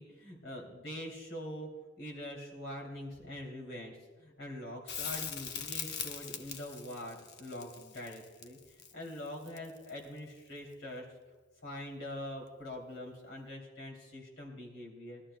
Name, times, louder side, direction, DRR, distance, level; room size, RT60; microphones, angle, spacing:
voice 1, 0.0-1.7 2.0-11.1 11.6-15.2, left 1 dB, 85° left, 0 dB, 2.9 m, -44 dB
Crackle, 4.9-10.0 12.7-12.8, left 7 dB, 55° left, 0.7 m, -41 dB
21.0 x 12.5 x 2.2 m, 1.3 s
head